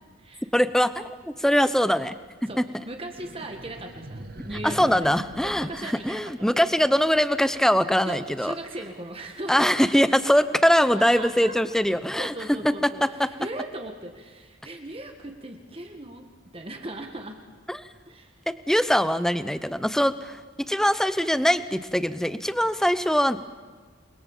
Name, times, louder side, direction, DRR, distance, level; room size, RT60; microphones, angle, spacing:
voice 1, 0.5-2.2 2.4-2.6 4.6-8.5 9.5-12.3 13.0-13.3 17.7-17.9 18.5-20.4 20.7-23.4, equal, ahead, 13 dB, 0.7 m, -22 dB
voice 2, 2.5-5.1 5.4-6.6 8.0-9.7 11.2-11.6 12.2-16.3 16.5-17.5 18.1-18.4, right 1 dB, 25° right, 4 dB, 1.7 m, -38 dB
sound 1, 3.2-6.6, right 1 dB, 45° right, 1.7 m, -42 dB
29.0 x 22.0 x 7.4 m, 1.5 s
head